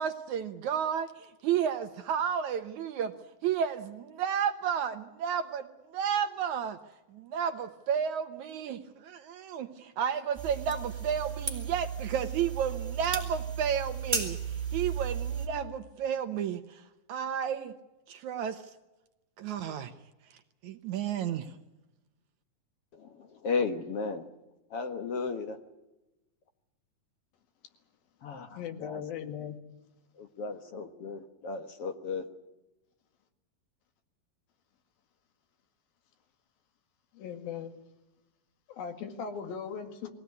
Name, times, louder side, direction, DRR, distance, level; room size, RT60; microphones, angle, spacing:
voice 1, 0.0-3.1 3.4-6.8 7.1-14.4 14.7-16.8 17.1-17.7 18.1-18.6 19.4-19.9 20.6-21.5, right 8 dB, 70° right, 8 dB, 2.1 m, -32 dB
sound 1, 10.4-15.5, right 6 dB, 15° right, 3.4 m, -35 dB
voice 2, 22.9-24.3 24.7-25.6 28.2-29.0 30.2-32.3, left 4 dB, 60° left, 7 dB, 1.7 m, -35 dB
voice 3, 28.6-29.6 37.1-37.7 38.7-40.1, left 7 dB, 85° left, 7 dB, 3.8 m, -38 dB
22.5 x 17.0 x 9.4 m, 1.0 s
omnidirectional pair, 4.1 m